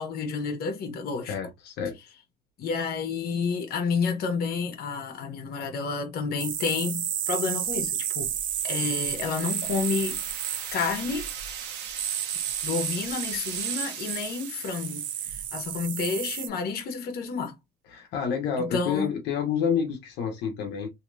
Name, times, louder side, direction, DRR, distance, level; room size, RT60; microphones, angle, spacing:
voice 1, 0.0-1.3 2.6-8.3 8.6-10.2 10.7-11.3 12.6-17.5 18.6-19.1, left 5 dB, 65° left, 1.0 m, -30 dB
voice 2, 1.3-2.0 17.9-20.9, left 7 dB, 85° left, 0.9 m, -28 dB
sound 1, 6.4-16.5, right 10 dB, 55° right, 0.5 m, -32 dB
sound 2, 8.4-15.4, right 8 dB, 80° right, 0.9 m, -42 dB
3.0 x 2.8 x 2.6 m
cardioid pair, 110°, 17 cm